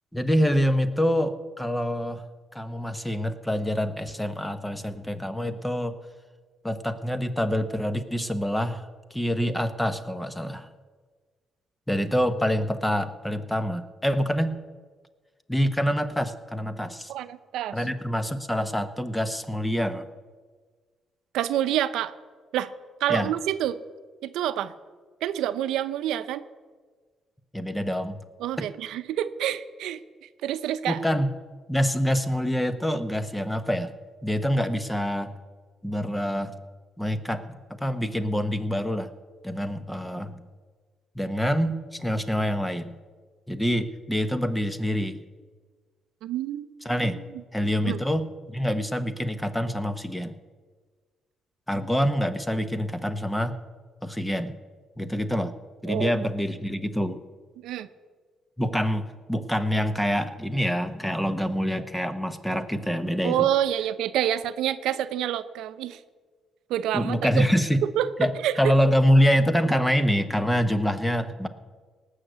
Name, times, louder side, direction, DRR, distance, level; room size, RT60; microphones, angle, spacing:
voice 1, 0.1-2.2 2.5-6.0 6.6-8.8 9.1-10.7 11.9-14.6 15.5-17.1 17.7-20.1 23.1-23.3 27.5-28.2 30.9-31.3 31.7-33.9 34.2-35.3 35.8-36.5 37.0-39.1 39.4-40.4 41.1-43.0 43.5-45.2 46.8-47.2 47.5-50.4 51.7-53.6 54.0-54.5 55.0-55.5 55.8-57.2 58.6-63.5 66.9-67.8 68.2-71.5, equal, 5° left, 11 dB, 1.0 m, -26 dB
voice 2, 17.1-17.8 21.3-22.1 22.5-22.7 23.0-23.8 24.2-24.7 25.2-26.4 28.4-30.0 30.4-31.0 46.2-46.7 47.8-48.0 55.9-56.1 57.6-57.9 63.2-66.0 66.7-67.3 67.8-68.1 68.4-68.5, right 11 dB, 85° right, 12 dB, 0.6 m, -27 dB
18.5 x 6.5 x 8.0 m, 1.5 s
cardioid pair, 90°, 0 cm